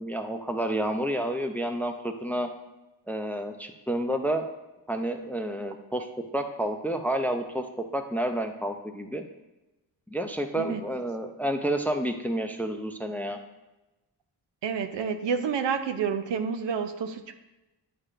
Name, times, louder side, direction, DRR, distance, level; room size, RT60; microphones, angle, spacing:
voice 1, 0.0-2.5 3.1-4.5 4.9-6.1 6.3-7.6 7.9-9.2 10.1-13.4, right 1 dB, 5° left, 6 dB, 0.5 m, -30 dB
voice 2, 14.6-17.3, right 6 dB, 70° right, 7 dB, 0.7 m, -29 dB
9.8 x 4.7 x 2.5 m, 0.99 s
cardioid pair, 85°, 45 cm